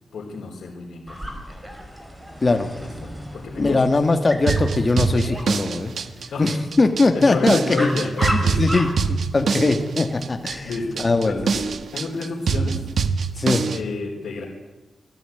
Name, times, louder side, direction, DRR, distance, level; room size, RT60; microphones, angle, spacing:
voice 1, 0.1-1.4 2.8-3.8 5.1-5.3 6.3-6.5 7.1-8.7 10.6-11.7 11.9-12.8 13.7-14.5, left 3 dB, 85° left, -2 dB, 4.6 m, -30 dB
Dog, 1.1-11.6, equal, 10° right, 5.6 m, -35 dB
voice 2, 2.4-2.7 3.6-5.9 6.4-7.9 8.3-11.5 13.4-13.7, left 3 dB, 30° left, 6 dB, 2.4 m, -21 dB
sound 1, 4.5-13.8, right 5 dB, 65° right, 1.6 m, -24 dB
28.5 x 19.0 x 9.5 m, 1.1 s
wide cardioid pair, 165°, 0 cm